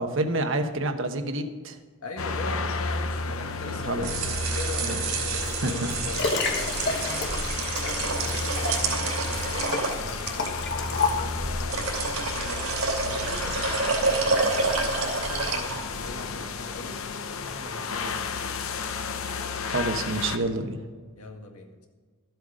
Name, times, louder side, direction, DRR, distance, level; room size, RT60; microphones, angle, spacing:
voice 1, 0.0-1.8 3.8-4.1 4.8-5.2 5.6-5.9 6.7-7.1 19.6-20.8, right 2 dB, 60° right, 7 dB, 1.0 m, -29 dB
voice 2, 2.0-6.6 7.8-17.0 17.4-18.6 21.2-21.9, left 3 dB, 85° left, 2 dB, 1.9 m, -41 dB
sound 1, 2.2-20.4, left 4 dB, 70° left, 0.8 m, -32 dB
sound 2, 3.9-16.2, right 4 dB, 75° right, 2.8 m, -29 dB
Liquid, 5.5-11.8 12.4-12.5, left 4 dB, 55° left, 1.4 m, -31 dB
13.0 x 7.9 x 5.0 m, 1.5 s
head